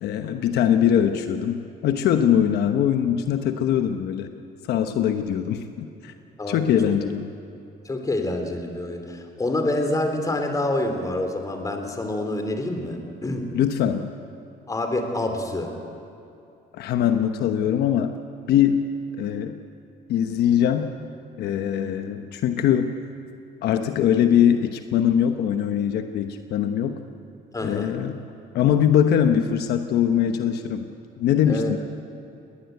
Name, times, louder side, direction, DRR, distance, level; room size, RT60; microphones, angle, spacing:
voice 1, 0.0-4.3 4.6-6.1 6.5-7.3 13.5-14.1 16.7-18.1 18.5-18.8 19.2-19.5 20.1-20.9 21.4-22.9 23.6-27.0 27.6-28.2 28.5-30.9 31.2-31.8, left 9 dB, 75° left, 7 dB, 1.1 m, -22 dB
voice 2, 6.4-7.0 7.8-13.5 14.7-15.7 27.5-27.9 31.5-31.8, left 1 dB, 20° left, 5 dB, 3.4 m, -27 dB
20.5 x 19.0 x 8.2 m, 2.7 s
cardioid pair, 110°, 17 cm